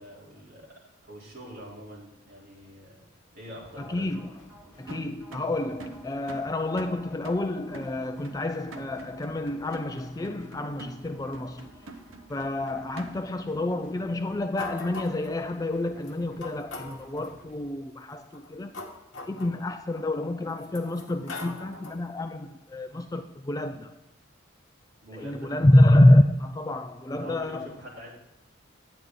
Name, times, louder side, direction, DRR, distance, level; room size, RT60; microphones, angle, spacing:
voice 1, 0.0-3.0 3.3-4.1 25.0-25.5 27.1-28.1, equal, 45° right, 3.5 m, -45 dB
sound 1, 3.5-17.6, equal, 5° right, 2.6 m, -54 dB
voice 2, 3.8-4.3 4.8-11.7 12.3-18.8 19.2-24.0 25.1-27.7, left 1 dB, 15° left, 0.3 m, -26 dB
sound 2, 4.9-13.5, right 3 dB, 80° right, 0.8 m, -47 dB
sound 3, 14.6-15.4 16.0-16.1 16.4-17.3 18.2-20.0 20.6-22.1, left 3 dB, 60° left, 1.2 m, -41 dB
9.7 x 9.1 x 3.7 m
head